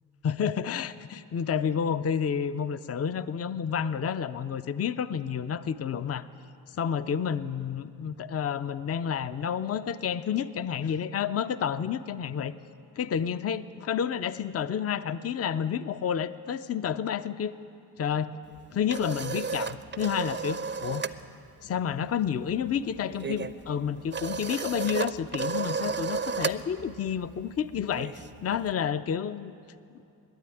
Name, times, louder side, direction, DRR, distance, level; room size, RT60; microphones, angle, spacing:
voice 1, 0.2-6.2 6.7-12.5 13.0-17.5 18.0-18.3 18.7-21.0 21.6-29.5, left 8 dB, 35° left, 13 dB, 0.5 m, -30 dB
sound 1, 18.5-21.2 21.5-21.8 22.0-28.7, right 5 dB, 30° right, 0.5 m, -34 dB
12.0 x 9.5 x 9.1 m, 2.6 s
cardioid pair, 50°, 42 cm